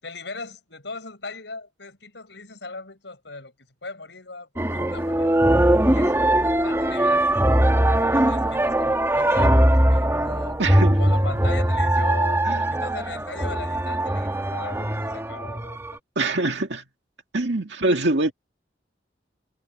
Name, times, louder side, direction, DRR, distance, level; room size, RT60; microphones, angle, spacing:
voice 1, 0.0-3.5 3.8-7.4 7.8-10.6 11.0-15.8, left 3 dB, 70° left, 7.6 m, -39 dB
sound 1, 4.6-15.9, right 1 dB, 15° right, 1.6 m, -21 dB
voice 2, 10.6-11.0 12.5-12.6 16.2-16.8 17.3-18.3, right 2 dB, 70° right, 2.3 m, -23 dB
head